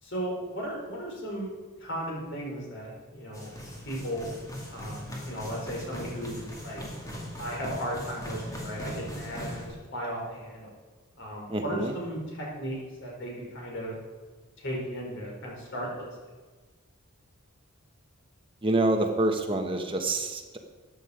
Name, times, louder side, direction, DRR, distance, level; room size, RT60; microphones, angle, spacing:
voice 1, 0.0-1.5 1.8-3.5 3.8-4.2 4.7-6.8 7.4-10.7 11.2-13.9 14.6-16.1, equal, 55° left, -2 dB, 4.4 m, -36 dB
sound 1, 3.3-9.7, equal, 15° left, 2.2 m, -39 dB
voice 2, 11.5-11.9 18.6-20.6, right 2 dB, 25° right, 4 dB, 1.2 m, -27 dB
14.0 x 9.3 x 5.1 m, 1.3 s
head